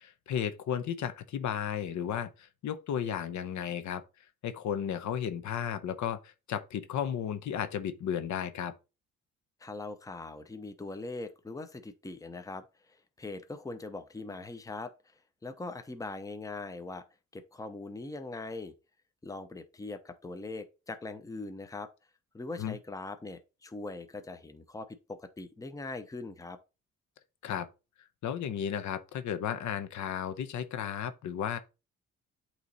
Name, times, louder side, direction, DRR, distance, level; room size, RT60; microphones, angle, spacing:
voice 1, 0.0-4.0 4.4-8.7 22.6-22.8 27.4-27.7 28.2-31.6, left 9 dB, 70° left, 0.8 m, -34 dB
voice 2, 9.6-14.9 15.4-17.0 17.3-18.7 19.2-21.9 22.3-26.6, left 3 dB, 10° left, 0.7 m, -41 dB
8.3 x 3.1 x 4.0 m
cardioid pair, 90°, 30 cm